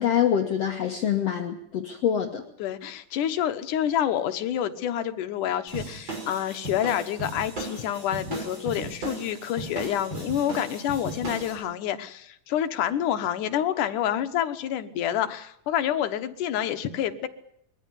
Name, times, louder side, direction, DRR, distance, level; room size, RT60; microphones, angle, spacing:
voice 1, 0.0-2.4, left 9 dB, 55° left, 3 dB, 2.2 m, -25 dB
voice 2, 2.6-17.3, left 10 dB, 75° left, 9 dB, 2.6 m, -28 dB
sound 1, 5.7-11.6, right 2 dB, 35° right, 6.6 m, -36 dB
22.5 x 15.0 x 9.7 m, 0.73 s
omnidirectional pair, 3.8 m